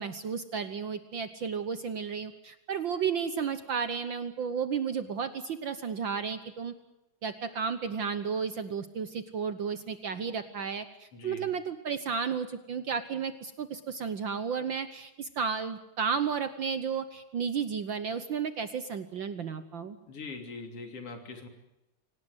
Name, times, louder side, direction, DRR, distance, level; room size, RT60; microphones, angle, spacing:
voice 1, 0.0-6.7 7.2-20.0, right 6 dB, 65° right, 11 dB, 1.2 m, -33 dB
voice 2, 11.1-11.5 20.1-21.5, left 3 dB, 50° left, 5 dB, 4.0 m, -42 dB
26.5 x 18.5 x 8.0 m, 0.92 s
omnidirectional pair, 3.4 m